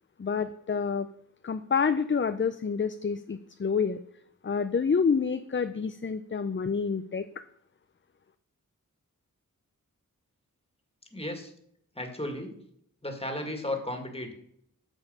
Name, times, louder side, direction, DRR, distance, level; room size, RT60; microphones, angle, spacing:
voice 1, 0.2-1.1 1.4-4.0 4.4-7.3, left 5 dB, 35° left, 10 dB, 0.5 m, -28 dB
voice 2, 11.1-11.5 12.0-12.5 13.0-14.3, left 1 dB, 15° left, 4 dB, 2.0 m, -34 dB
8.9 x 6.3 x 5.5 m, 0.69 s
wide cardioid pair, 40°, 34 cm